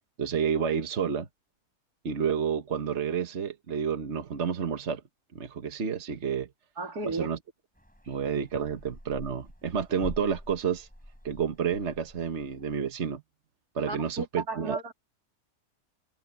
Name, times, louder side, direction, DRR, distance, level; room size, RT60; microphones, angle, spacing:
voice 1, 0.2-1.3 2.0-5.0 5.3-6.5 7.1-7.4 8.1-10.9 11.2-13.2 13.7-14.8, right 7 dB, 50° right, 1.6 m, -30 dB
voice 2, 6.8-7.3 8.0-8.2 13.9-14.9, right 3 dB, 80° right, 3.5 m, -34 dB
sound 1, 7.8-12.8, equal, 5° left, 6.0 m, -46 dB
omnidirectional pair, 1.6 m